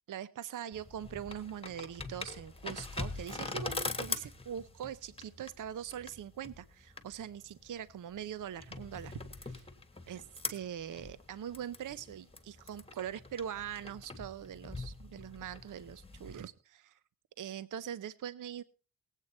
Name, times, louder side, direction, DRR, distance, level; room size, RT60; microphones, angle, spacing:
voice 1, 0.1-9.2 9.5-9.6 10.1-17.0 17.4-18.6, right 9 dB, 55° right, 17 dB, 0.6 m, -42 dB
sound 1, 0.7-16.4, left 3 dB, 15° left, 1.4 m, -43 dB
19.0 x 8.2 x 4.2 m, 0.37 s
wide cardioid pair, 100°, 37 cm